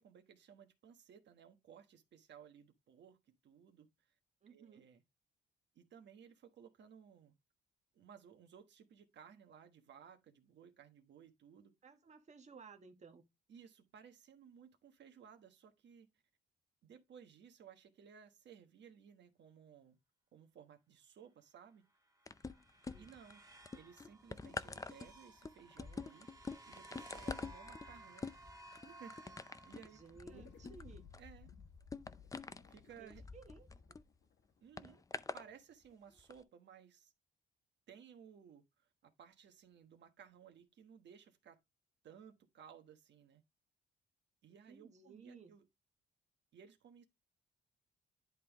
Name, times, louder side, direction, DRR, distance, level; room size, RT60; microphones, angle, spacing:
voice 1, 0.0-4.1 4.5-5.0 5.7-7.3 7.9-11.7 13.5-16.2 16.8-20.0 20.3-21.9 23.0-26.3 26.6-28.3 28.7-30.0 30.3-30.5 31.2-31.5 32.7-33.2 34.6-35.0 35.3-37.1 37.9-41.6 42.0-43.4 44.4-45.7 46.5-47.0, right 8 dB, 65° right, 1.2 m, -59 dB
voice 2, 4.4-4.9 11.8-13.3 22.9-23.1 29.9-31.1 33.0-34.0 44.5-45.5, right 5 dB, 35° right, 1.3 m, -57 dB
sound 1, 22.1-30.4, right 2 dB, 15° right, 1.9 m, -58 dB
sound 2, 22.3-23.3 23.7-34.0 34.8-35.5 36.2-36.3, left 4 dB, 15° left, 0.4 m, -46 dB
sound 3, 30.3-34.9, left 6 dB, 60° left, 1.5 m, -60 dB
10.5 x 3.6 x 3.5 m
cardioid pair, 90°, 20 cm